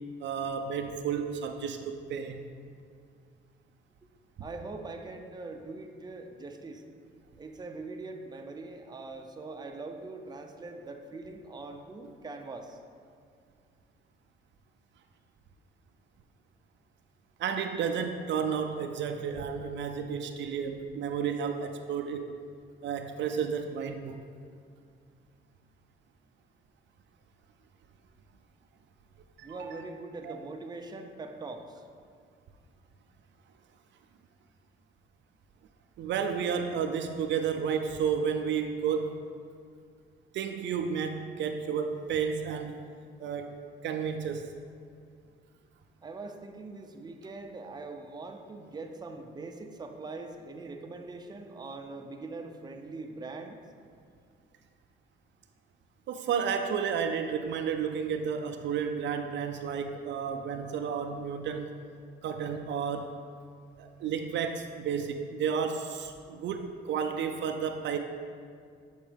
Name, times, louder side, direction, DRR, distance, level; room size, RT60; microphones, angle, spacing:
voice 1, 0.2-2.5 17.4-22.2 22.8-24.2 29.4-29.8 30.2-30.4 36.0-39.2 40.3-42.9 43.2-43.6 43.8-44.5 56.1-61.8 62.2-63.2 63.8-68.0, right 7 dB, 65° right, 5 dB, 0.4 m, -32 dB
voice 2, 4.4-6.8 7.4-12.8 29.4-31.8 46.0-53.6, right 3 dB, 20° right, 4 dB, 0.5 m, -42 dB
7.1 x 4.5 x 3.3 m, 2.2 s
cardioid pair, 90°, 20 cm